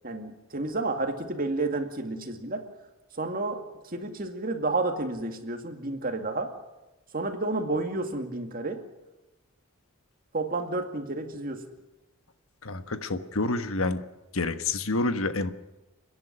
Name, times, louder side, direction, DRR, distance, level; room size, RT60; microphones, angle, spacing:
voice 1, 0.0-2.6 3.1-6.5 7.1-8.8 10.3-11.6, right 2 dB, 40° right, 6 dB, 2.2 m, -31 dB
voice 2, 12.6-14.0 14.3-15.5, left 2 dB, 70° left, 10 dB, 1.3 m, -28 dB
29.5 x 11.0 x 10.0 m, 1.0 s
head